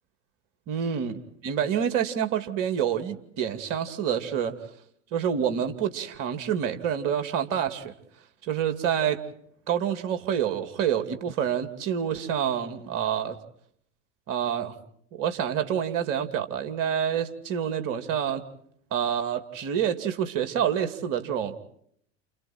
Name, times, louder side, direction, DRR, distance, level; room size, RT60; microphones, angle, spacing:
voice 1, 0.7-1.1 1.4-4.6 5.1-7.9 8.4-9.2 9.7-13.4 14.3-14.7 15.1-18.4 18.9-21.6, right 9 dB, 60° right, 8 dB, 2.7 m, -27 dB
30.0 x 29.5 x 4.4 m, 0.69 s
hypercardioid pair, 80°, 37 cm